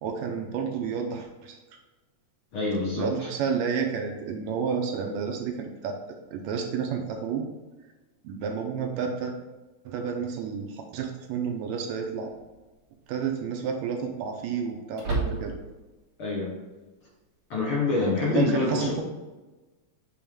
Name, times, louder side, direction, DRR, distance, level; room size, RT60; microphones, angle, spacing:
voice 1, 0.0-1.6 3.0-5.9 6.3-7.5 8.2-9.3 9.9-12.3 13.1-15.5 18.2-19.0, right 6 dB, 75° right, 3 dB, 1.9 m, -30 dB
voice 2, 2.5-3.3 16.2-16.6 17.5-19.0, left 3 dB, 60° left, -4 dB, 1.5 m, -26 dB
sound 1, 10.3-10.4 12.2-12.7 13.0-13.1 14.9-15.8, right 3 dB, 55° right, 2.6 m, -31 dB
8.5 x 3.1 x 3.5 m, 1.2 s
omnidirectional pair, 3.4 m